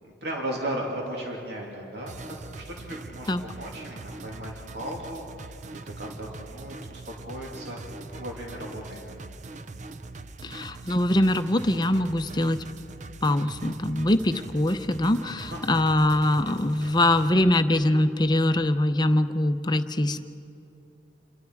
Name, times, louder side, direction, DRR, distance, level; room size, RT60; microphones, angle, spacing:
voice 1, 0.0-7.0 7.3-7.8 8.1-9.3 15.5-15.8, right 1 dB, 65° right, -1 dB, 2.8 m, -36 dB
sound 1, 2.1-17.3, right 3 dB, 40° right, 0.6 m, -42 dB
voice 2, 10.4-12.6 13.2-20.2, left 1 dB, 25° left, 9 dB, 0.7 m, -23 dB
28.5 x 22.5 x 4.7 m, 2.7 s
head